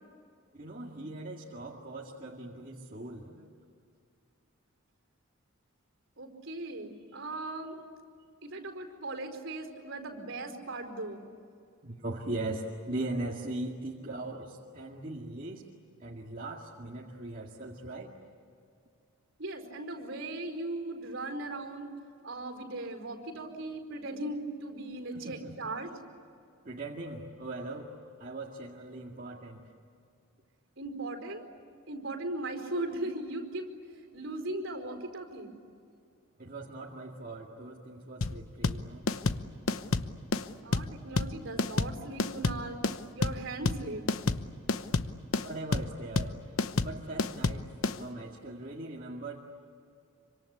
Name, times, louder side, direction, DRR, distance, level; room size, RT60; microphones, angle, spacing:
voice 1, 0.5-3.5 11.8-15.6 16.0-18.1 25.1-25.6 26.6-29.7 36.4-39.1 45.4-46.4 46.8-49.4, right 2 dB, 40° right, -3 dB, 2.1 m, -40 dB
voice 2, 6.2-7.8 8.4-11.3 19.4-21.9 22.2-25.9 30.8-31.4 31.9-35.6 40.6-42.8 43.1-44.1, right 2 dB, 60° right, 4 dB, 4.7 m, -38 dB
sound 1, 38.2-48.0, left 3 dB, 75° left, 1.0 m, -29 dB
27.0 x 25.5 x 8.5 m, 2.4 s
head